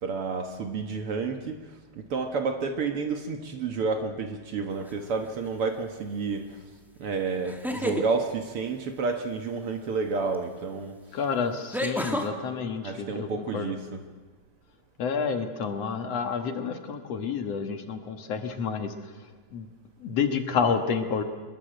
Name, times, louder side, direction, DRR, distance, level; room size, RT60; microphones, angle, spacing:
voice 1, 0.0-6.6 7.0-11.0 12.8-14.0, right 4 dB, 55° right, 5 dB, 2.1 m, -30 dB
sound 1, 4.9-5.3 7.4-8.1 10.3-10.4 11.7-12.3, left 1 dB, ahead, 1.4 m, -30 dB
voice 2, 11.1-13.7 15.0-18.9 19.5-19.7 20.0-21.2, left 6 dB, 60° left, 6 dB, 2.5 m, -29 dB
23.0 x 22.0 x 7.9 m, 1.4 s
omnidirectional pair, 3.4 m